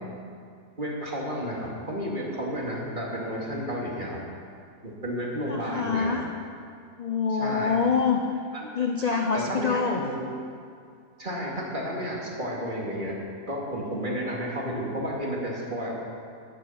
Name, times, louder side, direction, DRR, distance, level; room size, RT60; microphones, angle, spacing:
voice 1, 0.8-4.2 4.8-6.1 7.3-7.8 8.5-8.7 9.1-10.3 11.2-13.2 13.5-15.9, equal, 35° right, -4 dB, 2.5 m, -32 dB
voice 2, 5.5-6.3 7.0-8.2 8.8-10.0, left 5 dB, 45° left, 2 dB, 0.5 m, -25 dB
13.0 x 10.0 x 5.7 m, 2.4 s
omnidirectional pair, 1.6 m